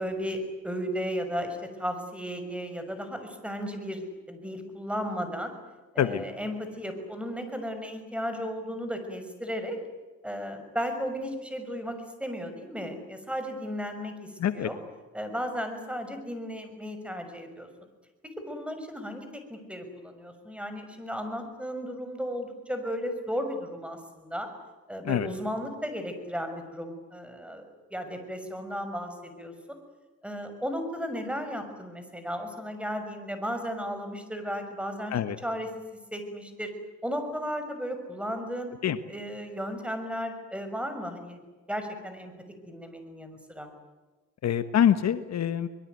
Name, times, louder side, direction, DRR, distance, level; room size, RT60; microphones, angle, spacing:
voice 1, 0.0-5.5 5.9-9.8 10.2-14.8 15.1-17.7 18.2-24.5 24.9-27.6 27.9-29.8 30.2-35.2 35.4-35.7 36.1-36.7 37.0-38.7 39.1-41.4 41.7-42.3 42.7-43.7, equal, 5° right, 7 dB, 6.2 m, -35 dB
voice 2, 14.4-14.7 25.0-25.3 35.1-35.4 38.8-39.0 44.4-45.7, left 9 dB, 60° left, 11 dB, 1.4 m, -25 dB
24.0 x 22.0 x 9.5 m, 1.2 s
cardioid pair, 90°, 30 cm